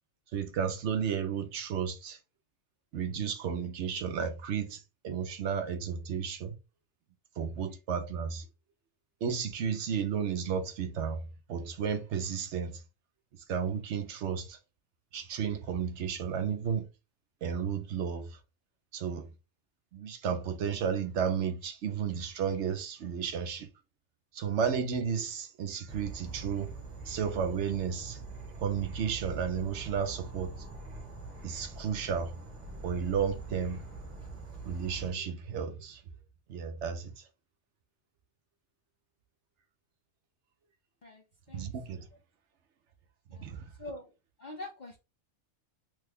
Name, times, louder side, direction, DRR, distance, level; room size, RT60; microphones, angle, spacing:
voice 1, 0.3-2.2 2.9-6.6 7.4-8.5 9.2-12.8 13.3-14.6 15.1-16.9 17.4-18.4 18.9-19.3 19.9-23.7 24.3-26.7 27.0-28.2 28.6-30.6 31.4-32.4 32.8-33.8 34.6-36.0 36.5-37.3 41.5-42.1 43.4-43.7, right 7 dB, 70° right, 0.9 m, -33 dB
Insect / Frog, 25.9-35.1, right 4 dB, 35° right, 1.1 m, -44 dB
voice 2, 41.0-42.0 43.3-43.5 43.8-44.1 44.4-45.0, left 2 dB, 55° left, 0.5 m, -45 dB
3.3 x 2.2 x 3.4 m
omnidirectional pair, 1.3 m